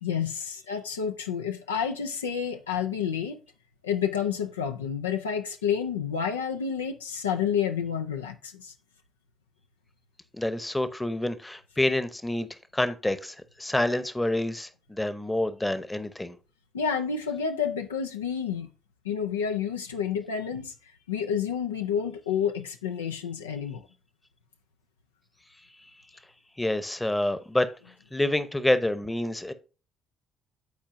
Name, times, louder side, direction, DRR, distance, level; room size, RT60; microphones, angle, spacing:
voice 1, 0.0-3.4 3.8-8.7 16.7-18.7 19.0-20.7 21.1-23.8, left 7 dB, 85° left, 0.5 m, -29 dB
voice 2, 10.3-16.4 26.6-27.7 28.1-29.5, left 1 dB, 15° left, 0.9 m, -28 dB
12.5 x 4.4 x 2.6 m
figure-of-eight pair, 45°, 0 cm